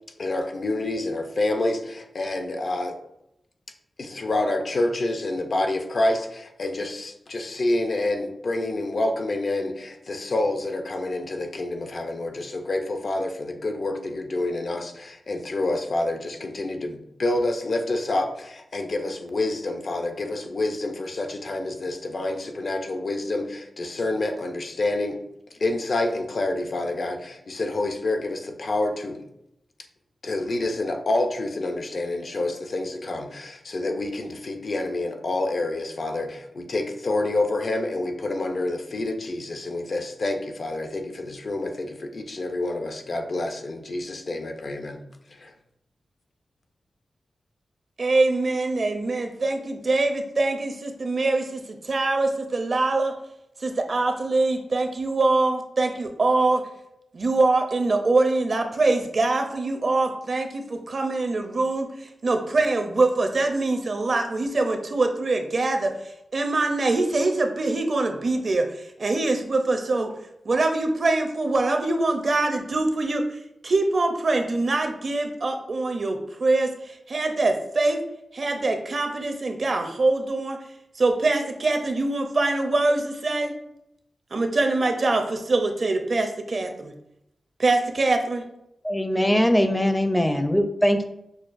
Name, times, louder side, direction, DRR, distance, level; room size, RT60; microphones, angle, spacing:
voice 1, 0.2-2.9 4.0-25.2 25.5-29.2 30.2-45.0 45.3-45.5, left 2 dB, 60° left, 5 dB, 0.5 m, -28 dB
voice 2, 48.0-53.1 53.6-56.6 57.1-65.9 66.3-70.1 70.4-73.2 73.6-78.0 78.3-80.6 81.0-83.5 84.3-86.9 87.6-88.4, right 2 dB, 55° right, 5 dB, 0.5 m, -24 dB
voice 3, 88.8-91.0, equal, 10° left, 7 dB, 0.4 m, -21 dB
6.2 x 2.2 x 2.5 m, 0.81 s
wide cardioid pair, 75°, 0 cm